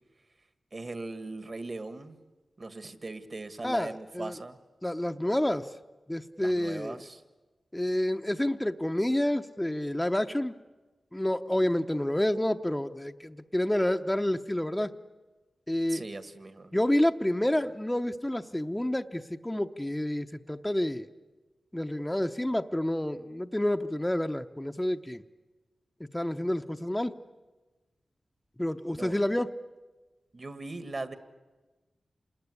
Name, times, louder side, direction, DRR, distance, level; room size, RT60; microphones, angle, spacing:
voice 1, 0.7-2.2 2.6-4.6 6.4-7.2 15.9-16.7 29.0-29.2 30.3-31.2, right 2 dB, 45° right, 11 dB, 1.8 m, -39 dB
voice 2, 3.6-4.3 4.8-5.7 6.1-7.0 7.7-10.6 11.1-14.9 15.7-16.0 16.7-21.1 21.7-25.2 26.1-27.1 28.6-29.5, left 1 dB, 10° left, 6 dB, 0.8 m, -29 dB
27.5 x 20.5 x 9.7 m, 1.2 s
cardioid pair, 65°, 0 cm